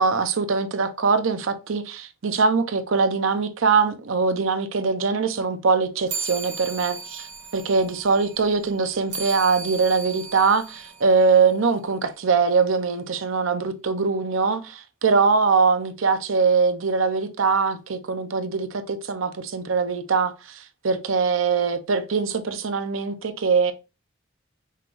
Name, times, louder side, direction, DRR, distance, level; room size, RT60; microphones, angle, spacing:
voice 1, 0.0-7.3 7.5-23.7, right 4 dB, 85° right, 0.6 m, -22 dB
sound 1, 6.1-11.9, right 4 dB, 60° right, 1.0 m, -37 dB
5.6 x 2.5 x 3.3 m
head